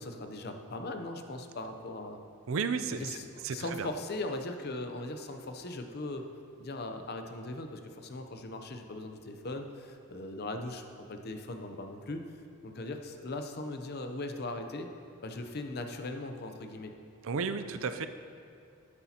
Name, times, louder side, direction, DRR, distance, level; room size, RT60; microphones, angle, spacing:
voice 1, 0.0-2.2 2.9-6.2 6.6-10.8 11.1-12.2 12.6-14.9 15.2-16.9, left 2 dB, 45° left, 6 dB, 0.6 m, -39 dB
voice 2, 2.5-3.2 3.4-3.9 17.2-18.1, right 5 dB, 65° right, 10 dB, 0.4 m, -33 dB
12.0 x 9.9 x 2.9 m, 2.5 s
head